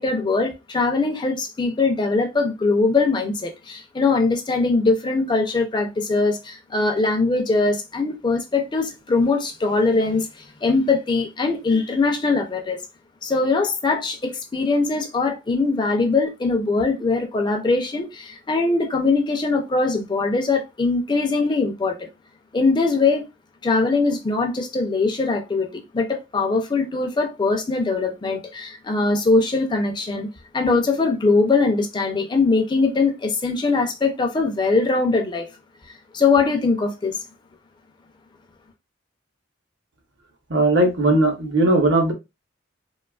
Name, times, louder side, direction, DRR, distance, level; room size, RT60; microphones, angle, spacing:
voice 1, 0.0-12.8 13.2-22.1 22.5-23.2 23.6-30.3 30.5-35.5 36.1-37.2, left 3 dB, 25° left, 0.4 m, -21 dB
voice 2, 40.5-42.1, right 2 dB, 65° right, 0.8 m, -18 dB
2.9 x 2.3 x 2.3 m
head